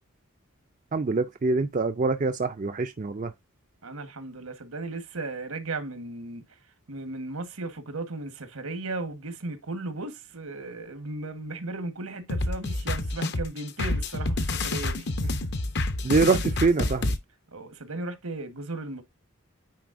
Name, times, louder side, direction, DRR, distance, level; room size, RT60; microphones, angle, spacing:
voice 1, 0.9-3.3 16.0-17.1, right 3 dB, 35° right, 0.4 m, -24 dB
voice 2, 3.8-6.4 6.9-15.4 16.2-16.3 17.5-19.0, right 2 dB, 80° right, 1.3 m, -36 dB
sound 1, 12.3-17.2, left 2 dB, 50° left, 0.7 m, -28 dB
9.3 x 4.2 x 2.6 m
head